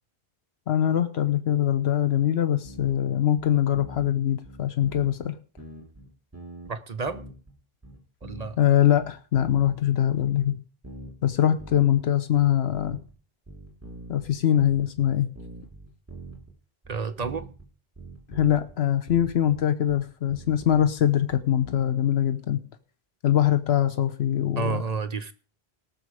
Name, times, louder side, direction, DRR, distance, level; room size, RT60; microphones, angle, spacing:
voice 1, 0.7-5.4 8.6-10.6 11.2-13.0 14.1-15.3 18.3-22.6 23.2-24.8, left 11 dB, 90° left, 1.1 m, -23 dB
sound 1, 2.7-3.0 3.4-4.1 4.4-5.3 5.6-6.7 7.1-7.5 7.8-9.8 10.1-10.5 10.8-12.1 12.4-13.1 13.5-16.5 16.8-17.7 18.0-18.8 19.1-21.8, right 1 dB, 15° right, 2.9 m, -43 dB
voice 2, 6.7-7.2 8.2-8.6 16.9-17.5 24.6-25.3, right 4 dB, 40° right, 0.9 m, -30 dB
18.5 x 6.5 x 4.9 m
omnidirectional pair, 1.0 m